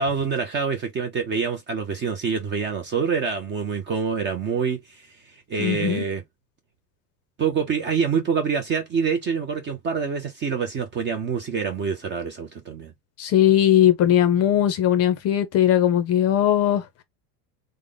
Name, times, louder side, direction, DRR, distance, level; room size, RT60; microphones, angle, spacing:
voice 1, 0.0-5.1 5.5-6.2 7.4-12.9, right 6 dB, 25° right, 0.4 m, -26 dB
voice 2, 5.6-6.0 13.2-16.8, left 11 dB, 30° left, 0.5 m, -19 dB
3.5 x 2.1 x 3.4 m
supercardioid pair, 140°, 50 cm